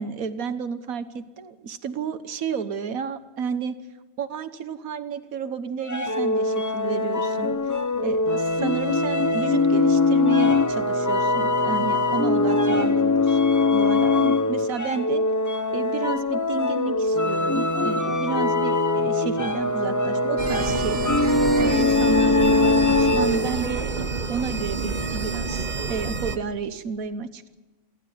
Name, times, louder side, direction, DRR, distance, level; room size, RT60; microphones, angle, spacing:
voice 1, 0.0-3.8 4.2-13.4 13.7-15.2 15.7-21.2 21.6-27.5, right 6 dB, 90° right, 11 dB, 1.5 m, -31 dB
sound 1, 5.8-23.6, left 3 dB, 15° left, 0.8 m, -22 dB
sound 2, 20.4-26.4, right 4 dB, 35° right, 1.3 m, -28 dB
28.0 x 11.5 x 9.5 m, 1.1 s
omnidirectional pair, 1.4 m